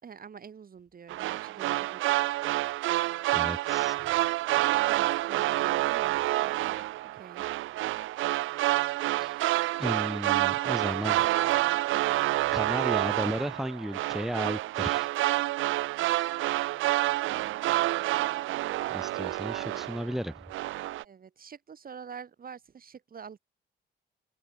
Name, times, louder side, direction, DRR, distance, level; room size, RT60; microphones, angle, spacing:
voice 1, 0.0-2.1 4.8-6.8 7.1-7.5 17.2-18.4 19.5-20.0 21.0-23.4, right 7 dB, 45° right, 5.1 m, -47 dB
sound 1, 1.1-20.2 20.5-21.0, right 16 dB, 85° right, 0.7 m, -28 dB
voice 2, 3.3-4.0 9.2-9.4 9.8-11.3 12.5-15.1 18.9-20.4, equal, ahead, 5.8 m, -34 dB
cardioid pair, 90°, 20 cm